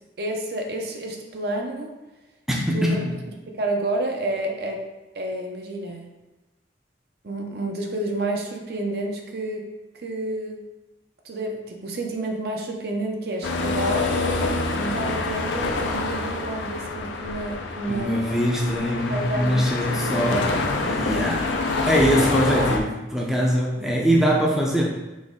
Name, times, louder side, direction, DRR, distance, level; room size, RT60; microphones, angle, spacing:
voice 1, 0.2-1.9 2.7-2.8 3.6-4.8 5.1-6.1 7.2-9.7 9.9-10.6 11.2-14.4 14.7-18.3 19.1-21.4 23.8-23.9, right 1 dB, 55° right, 2 dB, 0.6 m, -30 dB
voice 2, 2.5-3.1 17.9-20.5 20.8-21.5 21.8-24.9, equal, ahead, -3 dB, 0.5 m, -22 dB
sound 1, 13.4-22.8, left 3 dB, 80° left, 0.5 m, -26 dB
4.1 x 2.9 x 3.6 m, 1.1 s
head